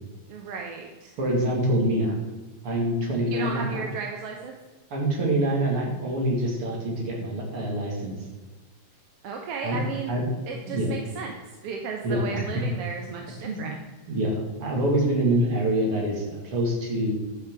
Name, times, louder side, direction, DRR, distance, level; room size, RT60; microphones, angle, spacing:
voice 1, 0.3-1.1 1.9-2.1 3.2-4.5 9.2-10.1 10.5-11.3 11.6-13.8, right 5 dB, 65° right, 2 dB, 1.7 m, -34 dB
voice 2, 1.2-2.1 2.6-3.9 4.9-8.1 9.6-9.8 10.1-10.2 10.7-10.9 12.0-12.4 13.4-13.7 14.1-17.1, right 1 dB, 50° right, -2 dB, 3.3 m, -25 dB
11.5 x 6.7 x 4.8 m, 1.3 s
omnidirectional pair, 3.3 m